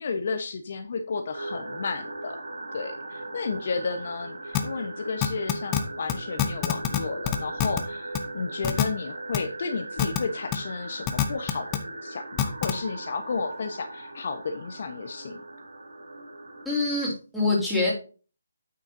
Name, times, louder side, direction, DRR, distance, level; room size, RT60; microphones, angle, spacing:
voice 1, 0.0-2.4 2.7-15.4, left 4 dB, 50° left, 6 dB, 1.1 m, -32 dB
sound 1, 1.3-16.7, right 2 dB, 75° right, 3.8 m, -39 dB
sound 2, 4.5-4.6 5.2-5.8 6.1-6.2 6.4-7.0 7.2-7.8 8.1-8.2 8.6-8.8 9.3-9.4 10.0-10.2 10.5-10.6 11.1-11.8 12.4-12.7, left 13 dB, 20° left, 1.0 m, -24 dB
voice 2, 16.7-17.9, left 2 dB, ahead, -7 dB, 3.6 m, -25 dB
9.3 x 7.5 x 2.7 m, 0.34 s
figure-of-eight pair, 155°, 0 cm